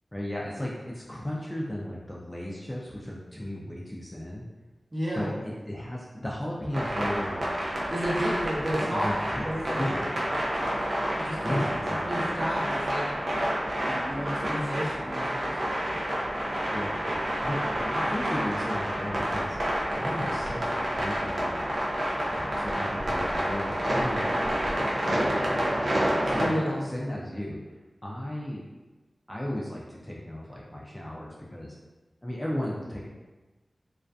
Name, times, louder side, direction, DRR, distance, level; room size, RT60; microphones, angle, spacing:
voice 1, 0.1-4.4 5.1-7.4 8.7-10.1 11.4-12.4 16.7-19.6 20.0-21.7 22.3-24.2 24.5-25.7 26.2-27.6 28.0-28.6 29.3-31.7 32.2-33.1, left 1 dB, 15° left, -5 dB, 0.3 m, -35 dB
voice 2, 4.9-5.3 7.9-10.1 11.2-11.6 11.9-13.2 13.8-15.6 26.4-26.9, equal, 25° right, -5 dB, 0.7 m, -32 dB
sound 1, 6.7-26.5, equal, 75° right, 0.4 m, -29 dB
2.4 x 2.3 x 2.2 m, 1.2 s
wide cardioid pair, 75°, 0 cm